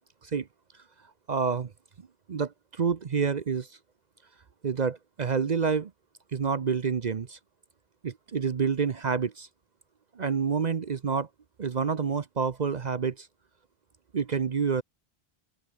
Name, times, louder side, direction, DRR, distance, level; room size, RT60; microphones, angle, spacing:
voice 1, 1.3-1.7 2.3-3.8 4.6-5.9 6.3-7.4 8.0-9.5 10.1-11.3 11.6-13.3 14.1-14.8, right 6 dB, 45° right, 0.8 m, -28 dB
open air
omnidirectional pair, 1.1 m